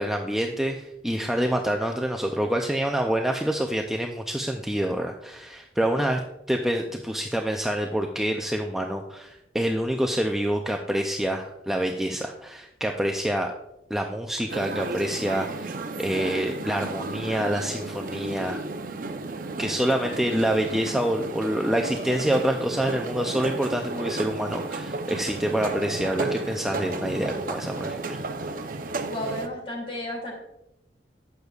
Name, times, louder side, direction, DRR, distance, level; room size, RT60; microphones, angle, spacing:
voice 1, 0.0-6.2 6.5-13.5 13.9-18.6 19.6-28.2, right 1 dB, ahead, 2 dB, 0.4 m, -27 dB
sound 1, 14.5-29.5, right 3 dB, 50° right, 0.7 m, -33 dB
voice 2, 29.1-30.3, left 1 dB, 30° left, -1 dB, 2.6 m, -32 dB
11.5 x 8.0 x 2.4 m, 0.88 s
head